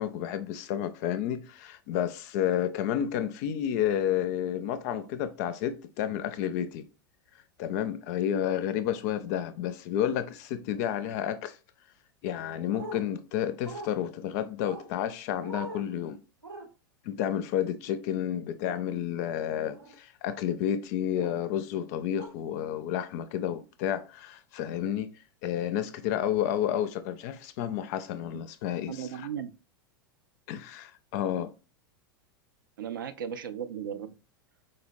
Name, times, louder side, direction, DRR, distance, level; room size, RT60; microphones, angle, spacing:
voice 1, 0.0-6.9 7.6-11.6 12.2-16.2 17.0-25.1 25.4-28.9 30.5-31.5, left 10 dB, 45° left, 0.4 m, -31 dB
sound 1, 12.7-13.0 13.6-13.9 14.6-14.9 15.4-15.8 16.4-16.6 18.6-18.8 19.7-20.0 21.2-21.4 22.2-22.3, right 2 dB, 90° right, 0.7 m, -41 dB
voice 2, 28.9-29.5 32.8-34.1, right 8 dB, 70° right, 0.4 m, -36 dB
4.0 x 2.1 x 2.6 m
figure-of-eight pair, 90°, 12 cm